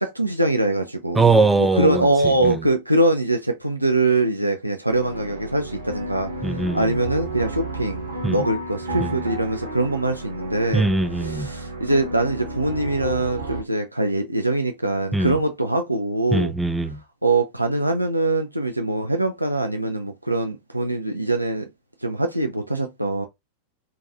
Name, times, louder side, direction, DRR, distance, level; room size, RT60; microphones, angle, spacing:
voice 1, 0.0-10.9 11.2-16.5 17.2-21.7 22.0-23.3, right 2 dB, 85° right, 0.3 m, -23 dB
voice 2, 1.2-2.7 6.4-7.0 8.2-8.4 9.0-9.1 10.7-11.5 15.1-15.4 16.3-17.0, right 3 dB, 10° right, 0.3 m, -21 dB
sound 1, 4.9-13.6, right 2 dB, 70° right, 0.8 m, -32 dB
2.6 x 2.2 x 2.5 m
figure-of-eight pair, 90°, 0 cm